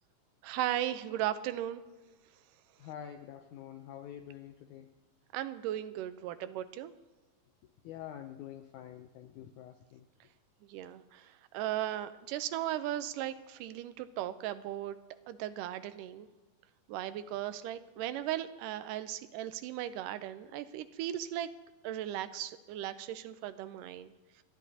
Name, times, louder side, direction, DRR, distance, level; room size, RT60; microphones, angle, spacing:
voice 1, 0.4-1.8 5.3-6.9 10.7-15.0 15.3-16.3 16.9-21.5 21.8-24.1, right 12 dB, 80° right, 11 dB, 2.1 m, -37 dB
voice 2, 2.8-4.9 7.8-10.1, left 10 dB, 80° left, 7 dB, 1.8 m, -47 dB
28.5 x 10.5 x 2.8 m, 1.2 s
omnidirectional pair, 4.0 m